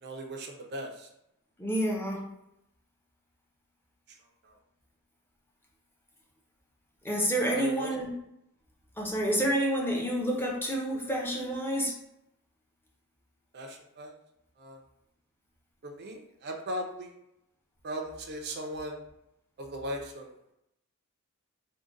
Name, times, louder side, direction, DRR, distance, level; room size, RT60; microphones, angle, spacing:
voice 1, 0.0-1.1 7.5-7.9 13.5-14.1 14.6-14.8 15.8-17.1 17.8-19.0 19.6-20.3, equal, 50° right, 2 dB, 0.5 m, -38 dB
voice 2, 1.6-2.2 7.0-8.1 9.0-11.9, right 1 dB, 10° left, -2 dB, 0.7 m, -29 dB
3.7 x 2.2 x 3.8 m, 0.83 s
head